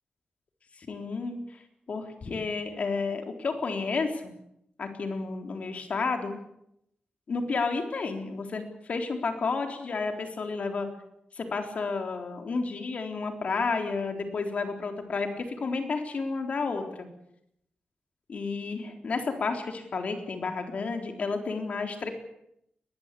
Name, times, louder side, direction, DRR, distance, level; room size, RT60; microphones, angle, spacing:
voice 1, 0.8-1.6 1.9-4.3 4.8-6.4 7.3-10.9 11.3-17.1 18.3-22.1, left 4 dB, 50° left, 5 dB, 3.8 m, -31 dB
22.0 x 20.0 x 8.4 m, 0.78 s
wide cardioid pair, 170°, 3 cm